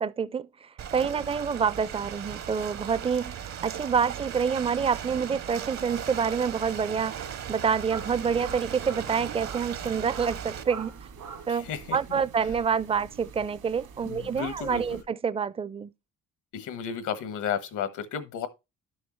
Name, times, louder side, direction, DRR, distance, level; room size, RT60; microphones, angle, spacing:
voice 1, 0.0-10.9 11.5-11.7 11.9-15.9, right 6 dB, 20° right, 0.4 m, -27 dB
Ocean, 0.8-10.6, right 9 dB, 60° right, 0.8 m, -37 dB
sound 1, 7.9-15.0, right 5 dB, 80° right, 2.2 m, -44 dB
voice 2, 11.5-12.2 14.0-15.0 16.5-18.5, left 8 dB, 80° left, 1.3 m, -33 dB
11.5 x 6.4 x 3.1 m
cardioid pair, 90°, 30 cm